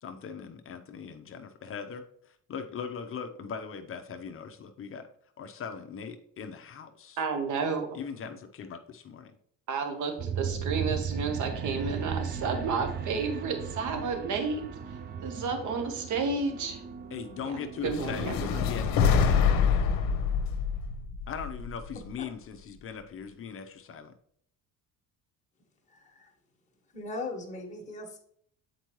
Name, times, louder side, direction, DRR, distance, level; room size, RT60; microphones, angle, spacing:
voice 1, 0.0-5.1 5.4-7.2 7.9-9.3 17.1-19.8 21.3-24.1, left 6 dB, 40° left, 7 dB, 0.6 m, -40 dB
voice 2, 7.2-7.9 9.7-14.6 15.2-16.8 17.8-18.5, right 4 dB, 55° right, 6 dB, 1.1 m, -31 dB
sound 1, 10.2-19.4, right 7 dB, 30° right, 0.4 m, -37 dB
sound 2, 17.9-22.1, left 6 dB, 70° left, 0.8 m, -26 dB
voice 3, 25.9-26.3 26.9-28.2, left 2 dB, 20° left, 0 dB, 1.5 m, -39 dB
7.9 x 4.5 x 3.0 m, 0.65 s
cardioid pair, 140°, 35 cm